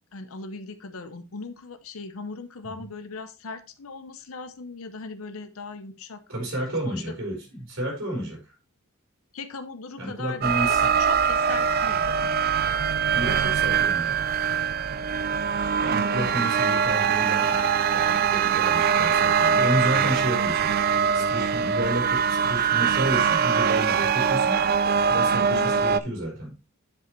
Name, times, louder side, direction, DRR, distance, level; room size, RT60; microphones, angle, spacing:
voice 1, 0.1-6.2 6.6-7.0 9.3-12.4 16.1-16.5 25.5-25.8, left 4 dB, 70° left, 10 dB, 0.7 m, -39 dB
voice 2, 6.3-8.5 10.0-10.9 13.1-14.2 15.8-17.6 17.9-20.7 21.1-24.6 25.1-26.6, right 1 dB, 60° right, -1 dB, 4.1 m, -31 dB
sound 1, 10.4-26.0, right 7 dB, 45° right, 0.3 m, -23 dB
9.5 x 5.1 x 3.0 m, 0.28 s
head